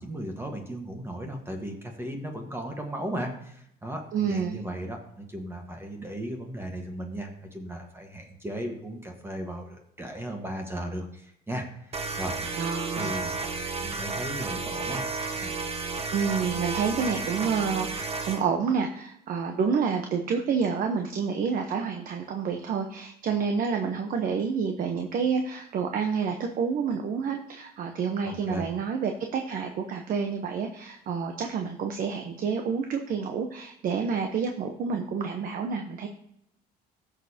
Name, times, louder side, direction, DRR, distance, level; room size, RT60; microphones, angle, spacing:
voice 1, 0.0-12.4 12.9-13.3 13.8-15.0 15.3-15.5 28.2-28.7, right 1 dB, 15° right, 2 dB, 1.4 m, -36 dB
voice 2, 4.1-4.6 12.6-13.3 16.1-36.1, right 6 dB, 55° right, 5 dB, 0.9 m, -29 dB
sound 1, 11.9-18.4, right 4 dB, 35° right, 1.1 m, -32 dB
15.0 x 6.7 x 2.8 m, 0.75 s
cardioid pair, 110°, 17 cm